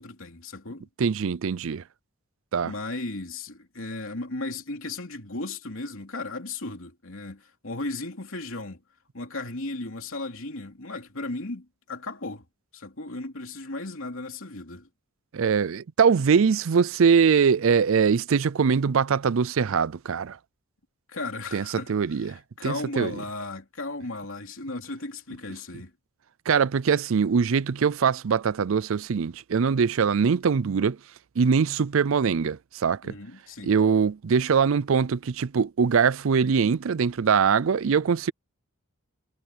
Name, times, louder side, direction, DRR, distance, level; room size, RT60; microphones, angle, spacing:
voice 1, 0.0-0.9 2.6-8.8 9.1-12.4 12.7-14.9 21.1-25.9 33.0-33.8, left 2 dB, 65° left, 3.2 m, -36 dB
voice 2, 1.0-1.8 2.5-2.7 15.3-20.4 21.5-23.1 26.5-31.0 31.4-33.1 33.6-38.3, right 6 dB, 65° right, 0.4 m, -22 dB
head